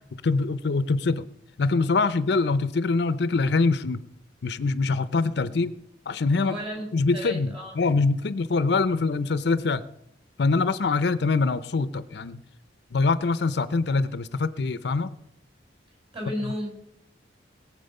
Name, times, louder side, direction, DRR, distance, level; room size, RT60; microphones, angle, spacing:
voice 1, 0.2-1.2 1.6-4.0 4.4-5.7 6.1-6.6 6.9-9.8 10.4-12.4 12.9-15.1, left 3 dB, 65° left, 15 dB, 0.6 m, -24 dB
voice 2, 6.4-7.8 16.1-16.7, equal, 30° right, 0 dB, 5.7 m, -34 dB
21.5 x 7.4 x 5.4 m, 0.79 s
head